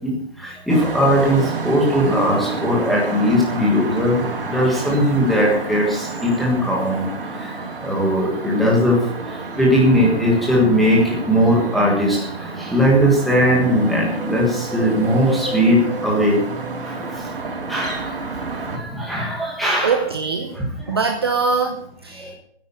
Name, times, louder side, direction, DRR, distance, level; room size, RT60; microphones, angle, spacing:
voice 1, 0.0-7.1 7.4-7.5 7.8-9.0 9.3-16.4 16.8-17.0 17.7-18.2 18.5-20.0 20.5-21.0 22.1-22.3, equal, ahead, -4 dB, 1.5 m, -19 dB
sound 1, 0.7-18.8, right 3 dB, 60° right, 4.2 m, -30 dB
voice 2, 19.8-20.6 20.9-22.3, right 5 dB, 25° right, 4 dB, 0.8 m, -22 dB
13.0 x 10.0 x 6.9 m, 0.67 s
hypercardioid pair, 180°, 31 cm